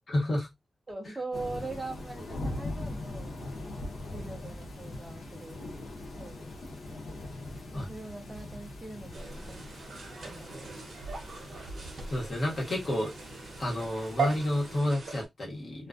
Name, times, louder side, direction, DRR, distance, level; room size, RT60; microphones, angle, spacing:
voice 1, 0.1-0.5 7.7-7.9 12.1-13.1 13.6-15.9, left 1 dB, 45° left, 1.1 m, -30 dB
voice 2, 0.9-3.4 4.1-5.6 6.2-6.6 7.7-10.7, right 3 dB, 20° right, 0.6 m, -42 dB
sound 1, 1.3-14.8, left 2 dB, 85° left, 0.7 m, -42 dB
sound 2, 9.1-15.3, right 5 dB, 65° right, 0.8 m, -39 dB
2.4 x 2.1 x 2.4 m
wide cardioid pair, 160°, 0 cm